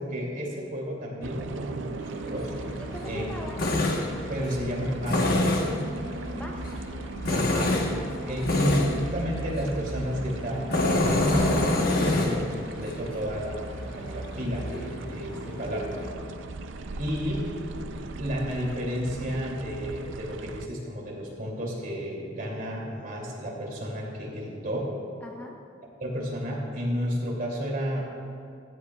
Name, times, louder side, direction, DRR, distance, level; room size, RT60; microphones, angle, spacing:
voice 1, 0.0-3.2 4.3-5.5 7.3-7.8 8.2-15.9 17.0-17.5 17.9-24.9 26.0-28.0, equal, 45° right, -3 dB, 2.8 m, -32 dB
sound 1, 1.2-20.7, right 3 dB, 70° right, 0.5 m, -38 dB
Tools, 2.0-16.1, left 2 dB, 50° left, 1.2 m, -29 dB
voice 2, 2.8-3.6 4.4-4.5 6.4-6.9 8.2-9.1 15.3-16.2 25.2-25.5, equal, 10° left, 0 dB, 0.7 m, -42 dB
15.5 x 14.0 x 2.4 m, 2.4 s
head